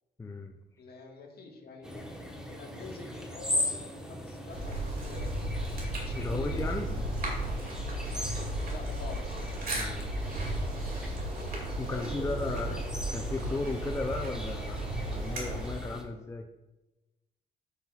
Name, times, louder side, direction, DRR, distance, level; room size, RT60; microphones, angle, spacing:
voice 1, 0.2-0.5 6.1-7.0 7.4-7.5 9.8-10.1 11.8-12.8 13.1-16.5, left 3 dB, 15° left, 3 dB, 0.5 m, -35 dB
voice 2, 0.8-5.3 5.9-6.7 8.6-9.4 11.9-12.8, left 3 dB, 55° left, 1 dB, 1.6 m, -46 dB
sound 1, 1.8-16.0, left 1 dB, 5° right, 1.2 m, -39 dB
sound 2, 4.5-15.9, right 1 dB, 45° right, 2.4 m, -34 dB
12.0 x 5.5 x 2.4 m, 1.0 s
cardioid pair, 90°, 20 cm